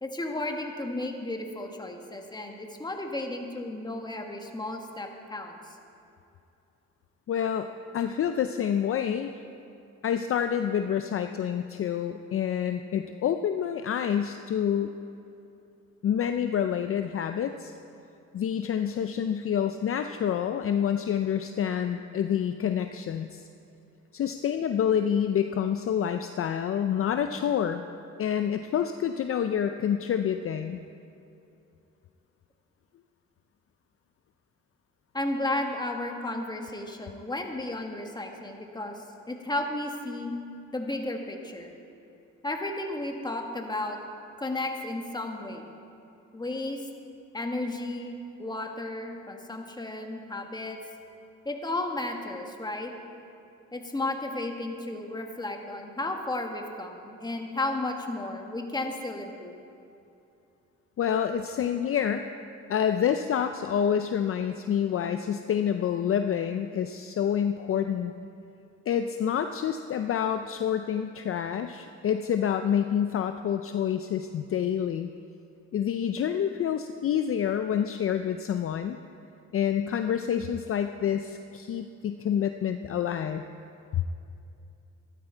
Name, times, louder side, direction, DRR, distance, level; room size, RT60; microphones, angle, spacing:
voice 1, 0.0-5.7 35.1-40.3 40.7-41.7 42.4-44.0 44.4-45.6 46.3-46.9 47.3-50.8 51.4-52.9 53.7-59.6, left 2 dB, 15° left, 3 dB, 1.5 m, -33 dB
voice 2, 7.3-9.4 10.0-15.0 16.0-17.7 18.3-23.4 24.1-27.8 28.2-30.8 61.0-62.3 62.7-68.1 68.9-75.1 75.7-79.0 79.5-83.4 83.9-84.0, left 8 dB, 45° left, 8 dB, 0.5 m, -28 dB
13.5 x 12.0 x 4.5 m, 2.7 s
cardioid pair, 90°, 30 cm